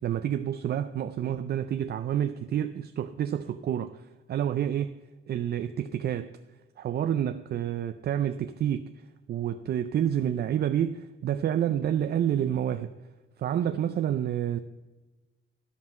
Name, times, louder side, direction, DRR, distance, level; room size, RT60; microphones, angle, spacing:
voice 1, 0.0-4.0 4.3-5.0 5.3-6.3 6.8-8.9 9.3-12.9 13.4-14.6, right 10 dB, 50° right, 0.4 m, -28 dB
13.5 x 5.5 x 7.4 m
wide cardioid pair, 165°, 21 cm